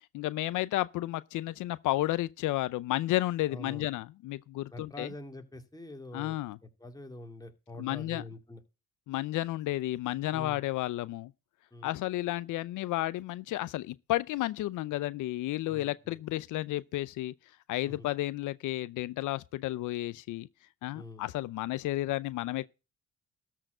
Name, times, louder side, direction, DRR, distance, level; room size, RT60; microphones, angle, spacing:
voice 1, 0.1-5.1 6.1-6.6 7.8-8.2 9.1-11.3 11.8-17.3 17.7-20.5 20.8-22.7, left 16 dB, 85° left, 0.6 m, -32 dB
voice 2, 3.5-3.9 4.7-6.4 6.8-8.6 10.3-10.6 11.7-11.9 15.7-16.2 17.9-18.1 20.9-21.2, left 1 dB, 10° left, 2.3 m, -45 dB
13.5 x 4.6 x 7.7 m
cardioid pair, 90°, 30 cm